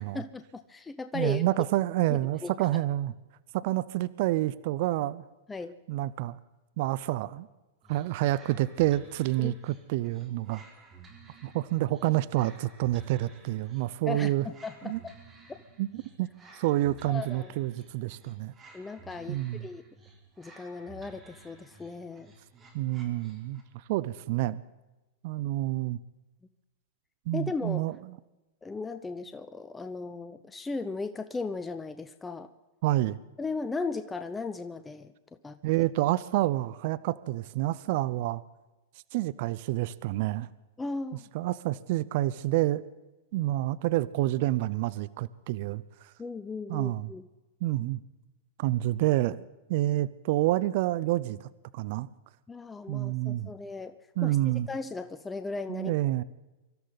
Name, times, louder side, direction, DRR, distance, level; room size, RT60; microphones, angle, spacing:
voice 1, 0.0-1.4 2.1-2.8 5.5-5.8 9.4-9.6 14.1-15.1 15.5-15.6 17.1-17.5 18.7-19.8 20.4-22.3 27.3-27.8 28.6-32.5 33.4-35.1 35.4-35.8 40.8-41.3 46.2-47.3 52.5-53.9 54.2-55.9, left 3 dB, 15° left, 10 dB, 0.7 m, -37 dB
voice 2, 1.1-3.1 3.5-5.2 5.9-6.4 6.8-7.5 7.9-10.6 11.4-14.4 14.8-15.0 15.8-15.9 16.2-16.3 16.5-18.5 19.3-19.7 22.7-23.6 23.9-24.6 25.2-26.0 27.3-28.2 32.8-33.2 35.6-38.4 39.1-40.5 41.3-42.8 43.3-45.8 46.7-47.1 47.6-48.0 48.6-49.4 49.7-52.1 52.9-53.5 54.2-54.7 55.7-56.2, right 16 dB, 55° right, 18 dB, 0.5 m, -28 dB
sound 1, 7.8-23.8, right 3 dB, 20° right, 3.7 m, -54 dB
24.5 x 13.0 x 4.0 m, 1.1 s
hypercardioid pair, 115°, 0 cm